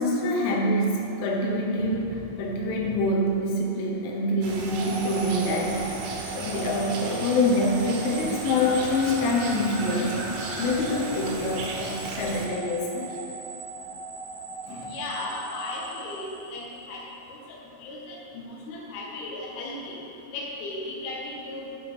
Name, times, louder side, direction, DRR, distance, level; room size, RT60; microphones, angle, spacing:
voice 1, 0.0-6.0 6.4-10.3 10.6-13.2 14.7-15.0, left 1 dB, 90° left, -1 dB, 3.4 m, -26 dB
sound 1, 4.4-12.5, right 3 dB, 75° right, 2.9 m, -35 dB
sound 2, 4.7-16.8, right 3 dB, 45° right, 2.3 m, -39 dB
voice 2, 14.8-17.0 17.3-20.0 20.3-21.7, left 2 dB, 65° left, -3 dB, 2.8 m, -36 dB
12.0 x 5.9 x 3.6 m, 2.7 s
omnidirectional pair, 5.4 m